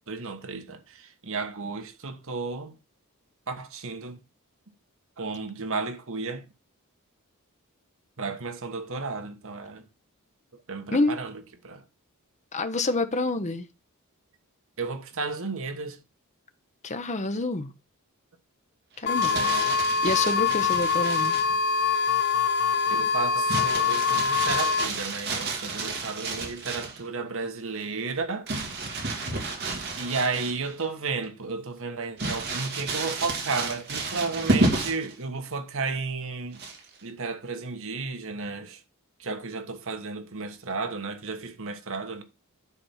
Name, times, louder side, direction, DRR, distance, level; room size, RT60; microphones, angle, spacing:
voice 1, 0.1-2.7 3.5-4.2 5.2-6.4 8.2-9.8 10.7-11.8 14.8-16.0 19.3-19.8 22.9-28.5 30.0-36.6 37.0-38.8 39.2-42.2, right 4 dB, 65° right, 1.3 m, -33 dB
voice 2, 12.5-13.7 16.8-17.7 19.0-19.3 20.0-21.4, left 2 dB, 35° left, 0.9 m, -27 dB
Crumpling crinkling, 19.0-21.5 23.5-27.0 28.5-30.8 31.2-31.3 32.2-35.1 36.5-37.0, right 2 dB, 50° right, 2.7 m, -31 dB
sound 1, 19.1-24.8, left 5 dB, 50° left, 0.5 m, -24 dB
9.8 x 4.3 x 5.8 m
head